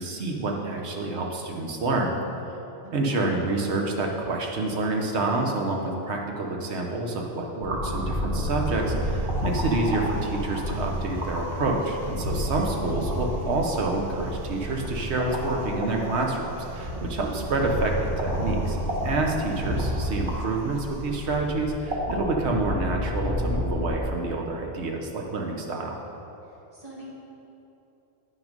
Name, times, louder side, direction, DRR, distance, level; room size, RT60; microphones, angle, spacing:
voice 1, 0.0-2.1 2.9-26.0, right 2 dB, 85° right, 1 dB, 1.3 m, -28 dB
voice 2, 2.8-3.4 12.5-13.0 26.7-27.0, equal, 35° right, -7 dB, 2.2 m, -43 dB
sound 1, 7.6-24.0, equal, 50° right, 1.5 m, -30 dB
sound 2, 8.6-21.6, right 5 dB, 65° right, 0.7 m, -42 dB
9.6 x 6.1 x 5.2 m, 2.9 s
omnidirectional pair, 1.1 m